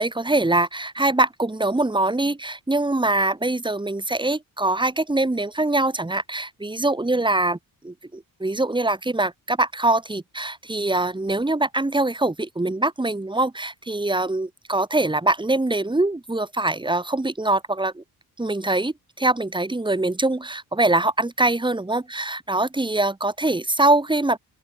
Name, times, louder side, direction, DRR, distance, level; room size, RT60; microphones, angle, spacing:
voice 1, 0.0-7.6 7.8-18.0 18.4-24.4, right 2 dB, 10° right, 6.6 m, -23 dB
open air
wide cardioid pair, 150°, 39 cm